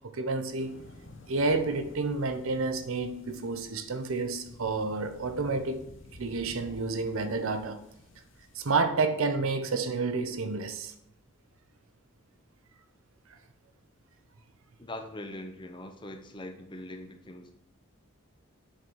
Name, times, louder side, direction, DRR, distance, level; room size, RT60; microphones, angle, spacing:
voice 1, 0.1-0.8 1.3-5.8 6.2-7.8 8.6-10.9, right 3 dB, 70° right, 0.7 m, -30 dB
sound 1, 0.6-8.7, left 1 dB, 60° left, 0.9 m, -51 dB
voice 2, 14.8-17.5, left 1 dB, 20° left, 0.6 m, -42 dB
7.7 x 4.0 x 4.6 m
head